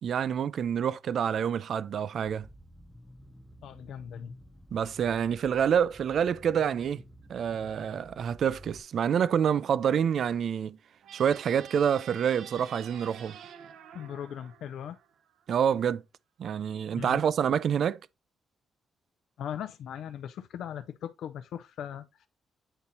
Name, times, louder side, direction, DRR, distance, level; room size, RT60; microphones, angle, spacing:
voice 1, 0.0-2.5 4.7-7.0 7.3-10.8 11.1-13.4 15.5-16.0 16.4-18.0, right 8 dB, 60° right, 0.4 m, -27 dB
sound 1, 2.2-8.8, equal, ahead, 0.8 m, -52 dB
voice 2, 3.6-4.3 13.9-15.0 17.0-17.2 19.4-22.3, left 9 dB, 80° left, 0.5 m, -39 dB
sound 2, 11.0-15.5, right 8 dB, 85° right, 0.8 m, -49 dB
8.9 x 4.2 x 4.0 m
cardioid pair, 135°, 0 cm